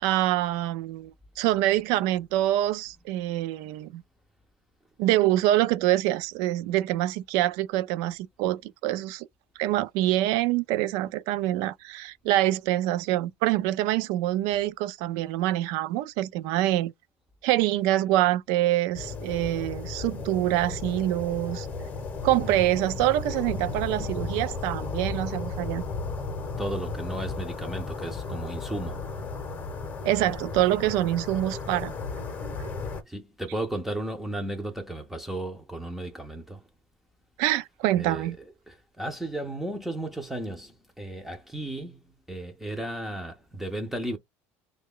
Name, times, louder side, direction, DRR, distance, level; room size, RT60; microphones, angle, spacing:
voice 1, 0.0-1.1 1.4-4.0 5.0-9.3 9.6-16.9 17.4-21.7 22.2-25.8 30.0-32.7 37.4-38.4, right 14 dB, 65° right, 0.4 m, -25 dB
sound 1, 18.9-33.0, left 4 dB, 25° left, 0.7 m, -34 dB
voice 2, 26.6-29.1 33.1-36.6 37.9-38.3 38.7-42.0 42.3-44.2, right 1 dB, 5° right, 0.5 m, -34 dB
3.2 x 2.2 x 3.6 m
cardioid pair, 150°, 7 cm